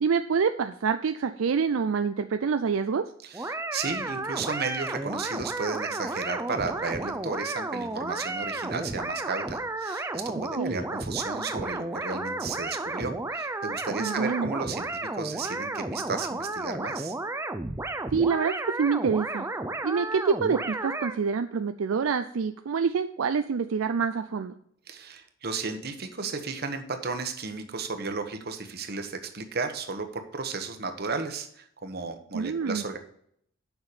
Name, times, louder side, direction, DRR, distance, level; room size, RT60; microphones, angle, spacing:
voice 1, 0.0-3.0 10.6-10.8 14.0-14.5 18.1-19.5 19.8-24.5 32.3-32.8, right 5 dB, 75° right, 9 dB, 0.4 m, -26 dB
voice 2, 3.2-14.9 15.1-17.1 24.9-30.1 30.3-33.0, right 4 dB, 50° right, 7 dB, 1.1 m, -34 dB
sound 1, 3.3-21.2, right 2 dB, 15° right, 0.5 m, -33 dB
7.1 x 5.8 x 6.7 m, 0.67 s
head